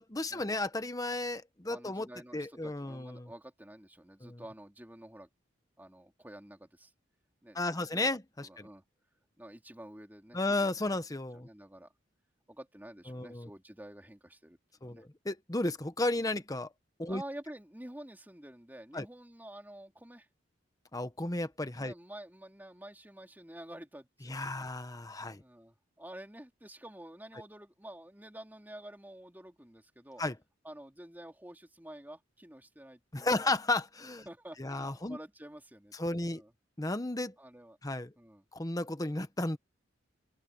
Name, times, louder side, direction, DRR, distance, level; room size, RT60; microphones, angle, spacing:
voice 1, 0.0-2.1 2.3-3.3 4.2-4.4 7.5-8.7 10.3-11.5 13.1-13.5 14.8-16.7 17.0-17.2 18.9-19.1 20.9-21.9 24.3-25.4 30.2-30.3 33.1-34.3 34.6-35.2 35.9-36.4 36.8-37.3 37.8-38.1 38.5-39.6, left 2 dB, 20° left, 1.1 m, -33 dB
voice 2, 1.7-5.3 5.8-6.9 7.4-8.1 8.4-8.8 9.4-10.7 11.3-11.9 12.5-15.0 17.1-20.3 21.7-24.6 25.4-30.2 30.6-33.5 34.2-36.5 37.4-37.8 38.2-38.4, right 1 dB, 10° right, 3.0 m, -49 dB
open air
head